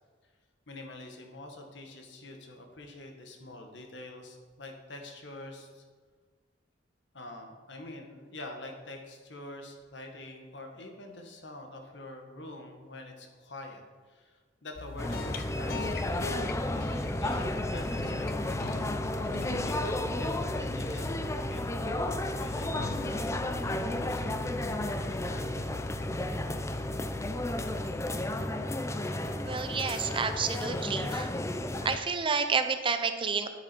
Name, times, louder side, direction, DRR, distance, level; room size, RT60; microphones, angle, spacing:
voice 1, 0.7-5.8 7.1-19.0 19.6-25.7, left 2 dB, 70° left, 3 dB, 1.6 m, -46 dB
sound 1, 14.7-28.3, left 3 dB, 55° left, 0.7 m, -41 dB
sound 2, 15.0-32.0, left 1 dB, 15° left, 0.5 m, -33 dB
voice 2, 29.5-31.3 31.8-33.5, right 5 dB, 30° right, 8 dB, 0.6 m, -30 dB
9.8 x 8.9 x 4.5 m, 1.5 s
head